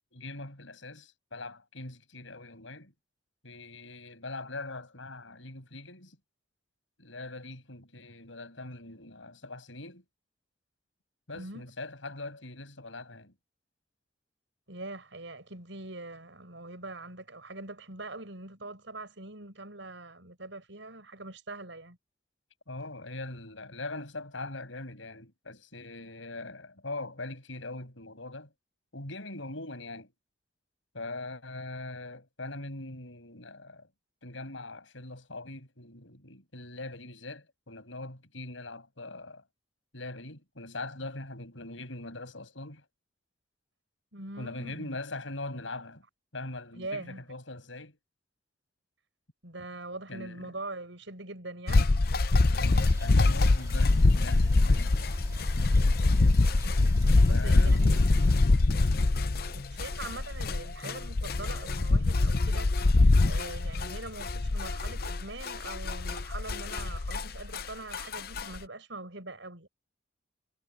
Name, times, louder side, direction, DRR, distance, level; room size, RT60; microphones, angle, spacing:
voice 1, 0.0-2.9 3.4-6.2 7.0-10.0 11.3-13.3 22.7-28.5 28.9-30.1 30.9-33.9 34.2-39.4 39.9-42.9 44.4-46.0 46.3-48.0 50.1-50.6 52.5-55.0 57.3-57.9, left 2 dB, 85° left, 7.0 m, -41 dB
voice 2, 11.3-11.6 14.7-22.0 44.1-45.0 46.7-47.2 49.4-51.9 56.4-56.5 57.3-58.1 59.4-62.7 63.2-69.7, right 2 dB, 75° right, 6.0 m, -43 dB
sound 1, 51.7-67.6 67.9-68.6, left 2 dB, 50° left, 0.6 m, -24 dB
sound 2, 52.6-58.4, equal, 15° right, 2.7 m, -43 dB
head